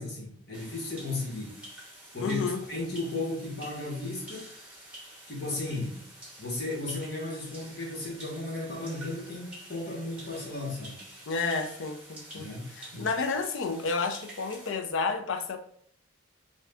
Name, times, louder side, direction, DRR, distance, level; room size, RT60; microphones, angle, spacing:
voice 1, 0.0-1.6 2.1-2.4 2.7-4.5 5.3-6.0 6.4-11.0 12.3-13.1, left 2 dB, 55° left, -3 dB, 1.1 m, -35 dB
sound 1, 0.5-14.7, right 1 dB, 5° right, 0.7 m, -48 dB
voice 2, 2.2-2.6 11.3-12.5 12.8-15.6, left 4 dB, 75° left, 6 dB, 0.4 m, -30 dB
2.6 x 2.4 x 3.3 m, 0.64 s
head